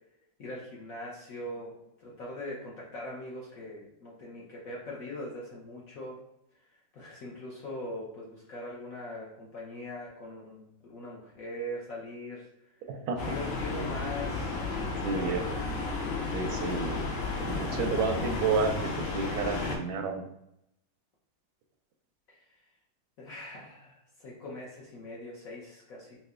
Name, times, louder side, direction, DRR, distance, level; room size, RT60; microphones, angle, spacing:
voice 1, 0.4-6.2 6.9-12.5 13.2-15.3 22.3-22.4 23.2-26.2, left 1 dB, 60° left, -4 dB, 0.9 m, -41 dB
voice 2, 12.8-13.4 15.0-15.4 16.3-17.1 17.4-20.3, right 4 dB, 85° right, 6 dB, 1.4 m, -31 dB
sound 1, 13.2-19.8, left 3 dB, 80° left, 1.5 m, -33 dB
5.5 x 2.1 x 2.4 m, 0.81 s
omnidirectional pair, 2.1 m